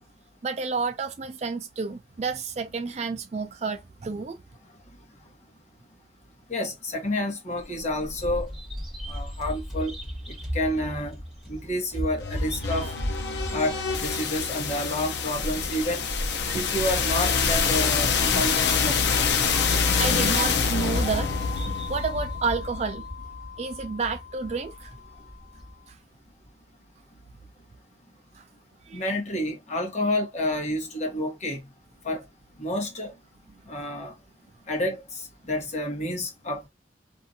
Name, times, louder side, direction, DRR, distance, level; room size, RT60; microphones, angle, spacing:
voice 1, 0.4-4.4 16.5-16.7 20.0-21.3 21.7-23.0 23.6-24.9 28.9-29.0, right 4 dB, 40° right, 0.4 m, -30 dB
voice 2, 6.5-8.5 9.1-9.9 10.5-11.1 11.5-12.9 13.4-16.1 16.5-19.0 28.9-31.6 32.0-32.2 32.6-33.1 33.7-34.1 34.7-36.7, left 1 dB, 40° left, 1.1 m, -29 dB
Bird vocalization bird call bird song, 7.6-25.7, equal, ahead, 1.3 m, -37 dB
sound 1, 12.2-24.1, left 5 dB, 70° left, 0.5 m, -26 dB
2.6 x 2.4 x 2.7 m
head